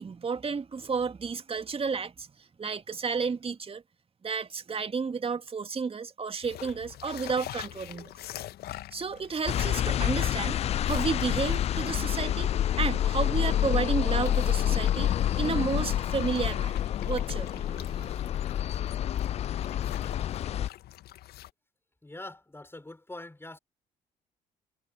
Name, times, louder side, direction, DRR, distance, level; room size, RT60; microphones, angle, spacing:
voice 1, 0.0-2.3 2.6-3.8 4.2-8.1 8.9-10.6 10.9-12.5 12.8-18.3, right 5 dB, 30° right, 2.4 m, -32 dB
sound 1, 6.4-21.5, left 14 dB, 55° left, 1.8 m, -45 dB
sound 2, 9.5-20.7, left 11 dB, 35° left, 0.4 m, -28 dB
voice 2, 22.0-23.6, left 2 dB, 10° left, 5.3 m, -43 dB
figure-of-eight pair, 45°, 19 cm